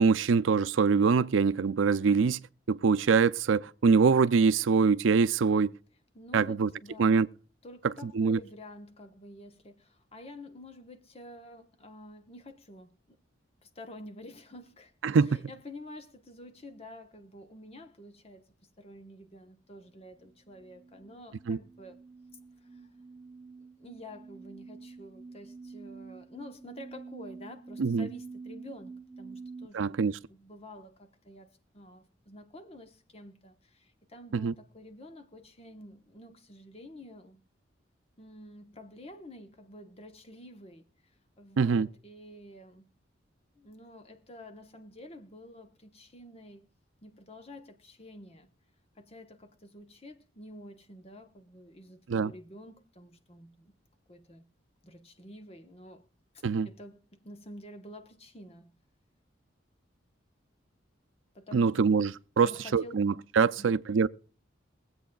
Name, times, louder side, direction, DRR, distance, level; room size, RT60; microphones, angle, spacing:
voice 1, 0.0-5.7 6.3-6.7 7.0-7.3 8.0-8.4 15.0-15.4 21.5-21.6 27.8-28.1 29.7-30.1 34.3-34.5 41.6-41.9 52.1-52.3 56.4-56.7 61.5-64.1, right 5 dB, 85° right, 0.5 m, -24 dB
voice 2, 6.1-7.3 7.6-13.2 13.6-18.5 18.8-22.0 22.7-23.0 23.8-30.0 30.3-37.4 38.2-40.8 41.4-42.9 43.5-46.7 47.0-48.5 49.0-53.7 54.1-54.4 54.8-56.1 56.3-58.7 61.3-61.9 62.4-62.9 63.4-63.8, left 1 dB, 30° left, 1.0 m, -49 dB
sound 1, 20.2-29.7, right 4 dB, 20° right, 0.6 m, -48 dB
23.0 x 8.1 x 2.3 m
head